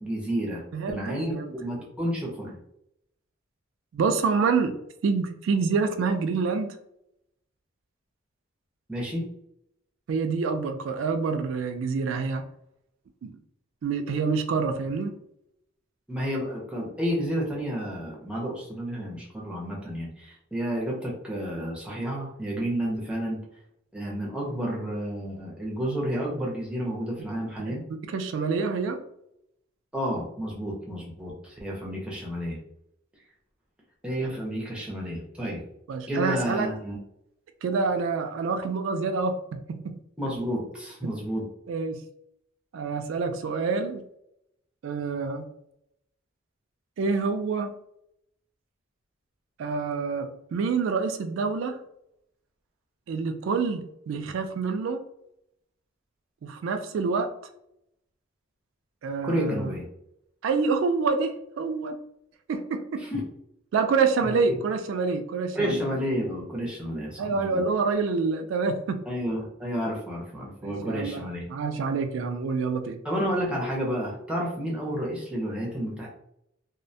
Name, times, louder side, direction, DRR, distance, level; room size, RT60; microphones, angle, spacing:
voice 1, 0.0-2.6 8.9-9.2 16.1-23.4 23.9-27.8 29.9-32.6 34.0-35.6 36.1-37.0 40.2-41.5 59.2-59.9 63.0-63.2 64.2-64.4 65.5-67.6 69.1-71.5 73.0-76.1, equal, 5° right, -4 dB, 0.5 m, -31 dB
voice 2, 0.7-1.5 3.9-4.8 5.0-6.8 10.1-12.5 13.2-13.4 13.8-15.2 28.1-29.0 35.9-36.7 37.6-40.0 41.7-42.0 42.7-44.0 44.8-45.5 47.0-47.7 49.6-51.8 53.1-55.0 56.4-57.3 59.0-59.7 60.4-61.9 62.5-63.0 63.7-65.8 67.2-69.0 70.6-73.0, right 4 dB, 70° right, 7 dB, 0.3 m, -27 dB
2.3 x 2.1 x 2.6 m, 0.78 s
head